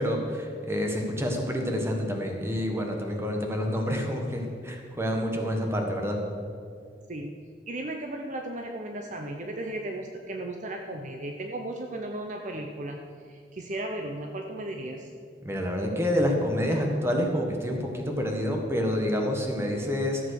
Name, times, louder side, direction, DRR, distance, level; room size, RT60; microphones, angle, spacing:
voice 1, 0.0-6.2 15.4-20.2, equal, 15° right, 2 dB, 1.5 m, -28 dB
voice 2, 7.7-15.1, right 1 dB, 45° right, 3 dB, 0.8 m, -35 dB
14.0 x 7.4 x 6.4 m, 2.3 s
head